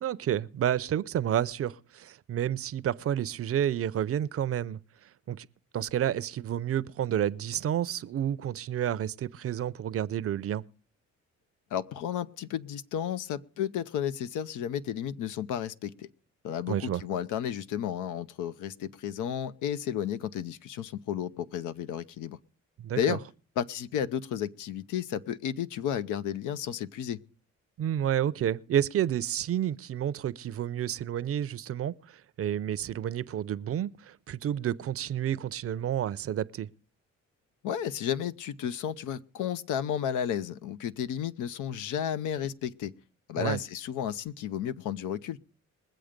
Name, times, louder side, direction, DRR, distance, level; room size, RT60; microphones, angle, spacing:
voice 1, 0.0-4.8 5.3-5.5 5.7-10.6 16.7-17.0 22.8-23.2 27.8-36.7 43.4-43.6, right 10 dB, 50° right, 0.6 m, -30 dB
voice 2, 11.7-16.1 16.4-22.4 22.9-23.2 23.6-27.2 37.6-42.9 43.3-45.4, left 9 dB, 85° left, 0.7 m, -32 dB
21.5 x 7.7 x 5.1 m
cardioid pair, 90°, 30 cm